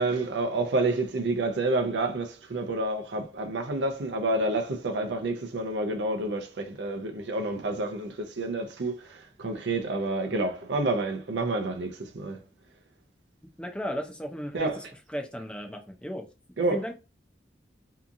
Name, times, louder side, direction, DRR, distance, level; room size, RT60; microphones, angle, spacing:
voice 1, 0.0-12.4 14.5-14.9 16.6-16.8, right 2 dB, 80° right, 0.5 m, -29 dB
voice 2, 13.6-16.3 16.7-16.9, equal, 5° left, 0.4 m, -35 dB
2.8 x 2.4 x 2.5 m
head